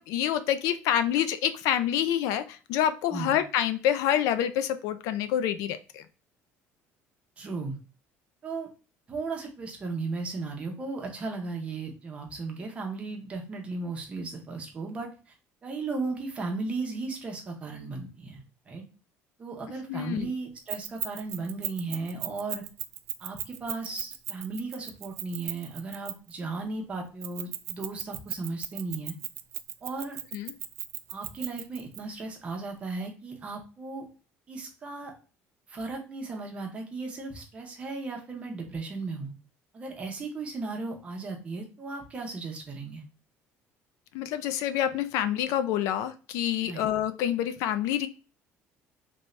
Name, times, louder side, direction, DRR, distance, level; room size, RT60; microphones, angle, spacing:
voice 1, 0.0-6.0 19.9-20.3 30.3-30.5 44.1-48.1, left 10 dB, 75° left, 11 dB, 0.4 m, -27 dB
voice 2, 7.4-7.8 8.4-8.7 9.1-15.3 15.6-18.8 19.4-22.6 23.2-29.1 29.8-30.2 31.1-34.1 34.5-35.1 35.7-39.3 39.7-43.0 46.6-46.8, right 3 dB, 20° right, 2 dB, 0.8 m, -36 dB
Keys jangling, 20.7-26.4 27.2-32.0, right 13 dB, 60° right, 0.4 m, -36 dB
3.3 x 2.6 x 3.1 m, 0.36 s
cardioid pair, 175°, 6 cm